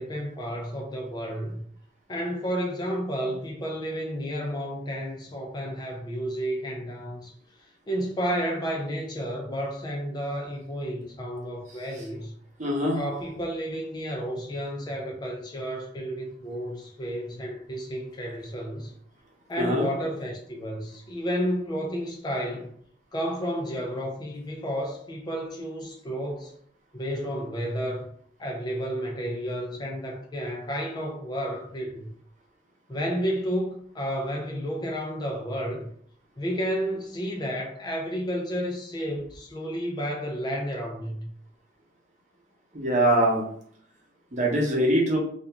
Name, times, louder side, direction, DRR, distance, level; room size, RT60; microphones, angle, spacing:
voice 1, 0.0-1.6 2.1-7.3 7.9-12.3 12.9-18.9 19.5-22.7 23.1-26.5 26.9-28.1 28.4-32.1 32.9-35.9 36.4-41.3, equal, 25° left, 0.4 m, -31 dB
voice 2, 12.6-13.0 19.6-19.9 42.7-43.4 44.3-45.2, right 1 dB, 40° right, 0.7 m, -23 dB
2.4 x 2.2 x 2.9 m
head